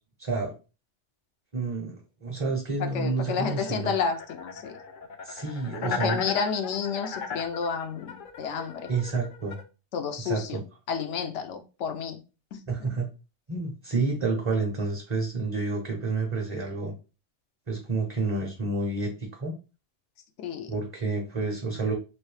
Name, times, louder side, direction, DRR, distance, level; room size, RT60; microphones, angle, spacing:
voice 1, 0.2-0.5 1.5-3.9 5.2-6.3 8.9-9.6 10.2-10.6 12.7-13.1 13.5-16.9 17.7-19.5 20.7-21.9, right 3 dB, 35° right, 0 dB, 0.6 m, -29 dB
voice 2, 2.8-4.8 5.8-8.9 9.9-10.6 10.9-12.2 12.5-12.6 20.4-20.7, left 6 dB, 90° left, 7 dB, 0.9 m, -30 dB
sound 1, 3.3-9.6, left 6 dB, 60° left, 0.6 m, -37 dB
3.1 x 2.6 x 3.2 m, 0.32 s
omnidirectional pair, 1.2 m